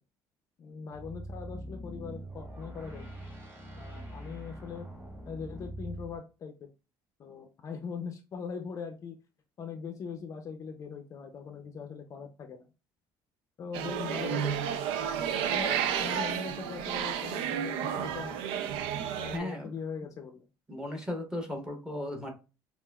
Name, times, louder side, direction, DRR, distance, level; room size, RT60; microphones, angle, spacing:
voice 1, 0.6-3.2 3.7-4.9 5.3-6.7 7.2-9.2 9.6-12.7 13.6-14.8 15.5-18.4 19.1-20.5, left 6 dB, 35° left, 5 dB, 0.5 m, -41 dB
sound 1, 0.9-6.2, right 1 dB, 30° right, 1.8 m, -43 dB
sound 2, 13.7-19.4, right 8 dB, 85° right, 0.4 m, -31 dB
voice 2, 19.3-19.7 20.7-22.3, left 1 dB, 5° right, 2 dB, 0.9 m, -36 dB
5.4 x 2.4 x 2.3 m, 0.30 s
cardioid pair, 150°, 9 cm